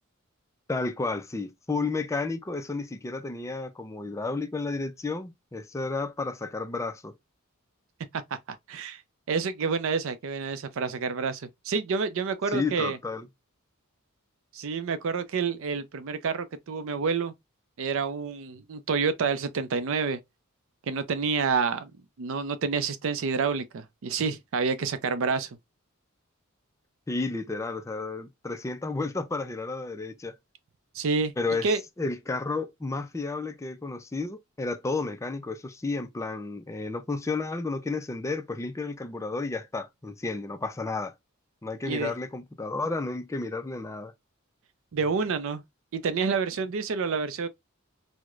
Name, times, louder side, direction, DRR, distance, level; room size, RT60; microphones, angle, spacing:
voice 1, 0.7-7.1 12.5-13.3 27.1-30.3 31.4-41.1 41.6-44.1, left 3 dB, 15° left, 0.4 m, -32 dB
voice 2, 8.7-9.0 9.3-13.0 14.5-17.3 17.8-20.2 20.9-21.9 22.2-25.5 30.9-31.3 31.6-31.8 41.9-42.1 44.9-45.6 45.9-47.5, right 5 dB, 65° right, 0.4 m, -28 dB
4.6 x 2.1 x 2.4 m
head